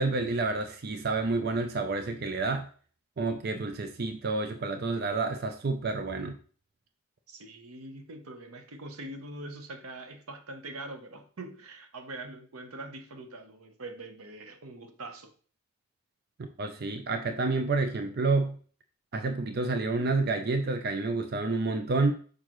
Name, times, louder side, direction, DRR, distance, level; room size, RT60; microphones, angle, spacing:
voice 1, 0.0-2.7 3.2-6.4 16.4-18.6 19.1-22.1, right 3 dB, 45° right, 0.5 m, -29 dB
voice 2, 7.3-15.3, right 2 dB, 90° right, 0.9 m, -43 dB
6.5 x 4.9 x 3.0 m
head